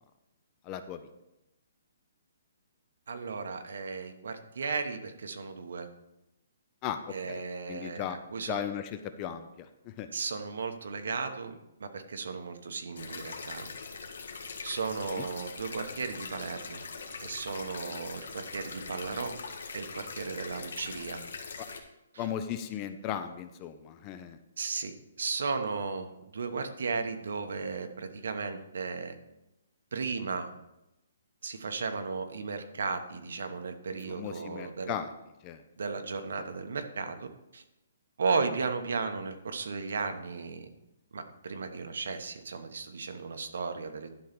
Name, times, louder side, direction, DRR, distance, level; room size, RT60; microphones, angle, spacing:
voice 1, 0.7-1.0 6.8-7.4 7.7-8.2 8.5-10.1 15.1-15.2 22.2-24.4 34.1-35.1 35.4-35.6, left 9 dB, 20° left, 10 dB, 0.4 m, -36 dB
voice 2, 3.1-5.9 7.1-8.6 10.1-13.7 14.6-16.8 17.2-19.3 19.7-21.2 22.1-22.3 24.6-29.1 29.9-30.5 31.4-34.9 35.8-37.6 38.2-40.7 41.1-44.1, right 4 dB, 65° right, 7 dB, 1.0 m, -35 dB
sound 1, 13.0-21.8, left 4 dB, 75° left, 1.6 m, -42 dB
11.5 x 3.9 x 5.9 m, 0.91 s
hypercardioid pair, 175°, 0 cm